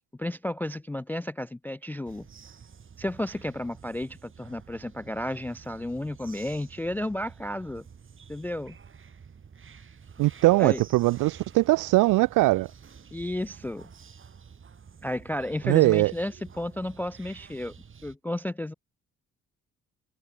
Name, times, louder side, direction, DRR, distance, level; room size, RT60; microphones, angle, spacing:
voice 1, 0.2-2.3 3.0-7.8 8.3-8.8 10.6-10.8 13.1-13.9 15.0-17.7 18.0-18.7, left 1 dB, 5° left, 0.3 m, -32 dB
sound 1, 2.0-18.1, right 6 dB, 40° right, 4.6 m, -50 dB
voice 2, 10.2-12.7 15.6-16.1, right 20 dB, 85° right, 0.5 m, -21 dB
cardioid pair, 90°, 30 cm